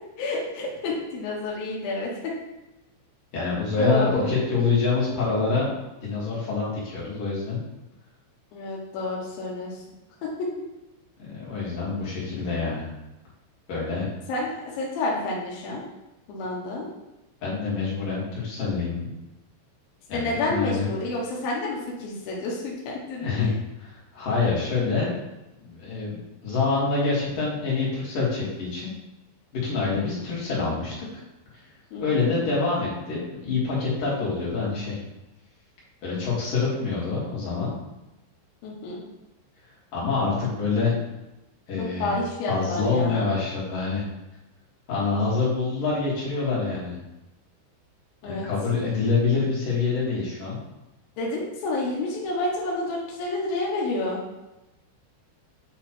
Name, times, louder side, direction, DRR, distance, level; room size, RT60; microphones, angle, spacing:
voice 1, 0.2-2.3 3.8-4.3 8.5-9.8 10.2-10.5 14.3-15.8 16.3-16.9 20.1-23.3 29.8-30.2 31.9-32.3 38.6-39.0 41.8-43.2 48.2-48.5 51.2-54.2, left 2 dB, 90° left, -3 dB, 2.0 m, -29 dB
voice 2, 3.3-5.7 6.0-7.6 11.2-12.9 13.7-14.1 17.4-19.1 20.1-20.9 23.2-23.5 23.8-25.2 25.6-26.2 26.4-28.9 29.5-31.2 32.0-35.0 36.0-37.8 39.9-40.9 41.7-42.1 42.5-44.0 44.9-47.0 48.2-50.6, left 4 dB, 55° left, -7 dB, 2.7 m, -26 dB
8.9 x 3.0 x 4.4 m, 0.99 s
omnidirectional pair, 5.9 m